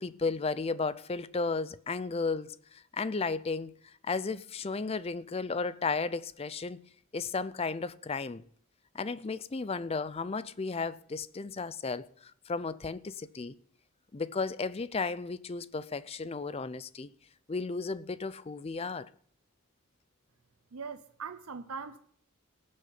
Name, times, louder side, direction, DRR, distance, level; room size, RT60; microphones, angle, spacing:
voice 1, 0.0-6.8 7.1-8.4 8.9-13.6 14.1-17.1 17.5-19.1, left 4 dB, 25° left, 0.5 m, -34 dB
voice 2, 20.7-22.0, right 5 dB, 80° right, 0.7 m, -41 dB
18.5 x 6.4 x 6.0 m
head